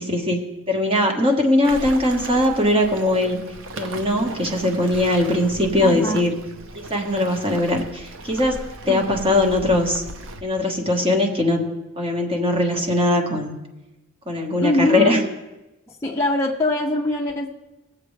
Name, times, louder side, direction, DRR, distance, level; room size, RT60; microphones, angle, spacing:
voice 1, 0.0-3.4 3.8-6.3 6.7-8.6 8.9-10.0 10.4-11.7 12.0-13.5 14.3-15.2, left 1 dB, 25° right, 2 dB, 1.3 m, -20 dB
Waves surf, 1.6-10.4, right 2 dB, 60° right, 0.8 m, -37 dB
voice 2, 5.8-6.3 8.9-9.0 14.6-15.3 15.9-17.5, left 2 dB, 10° left, -4 dB, 0.6 m, -23 dB
19.0 x 7.7 x 3.2 m, 1.0 s
head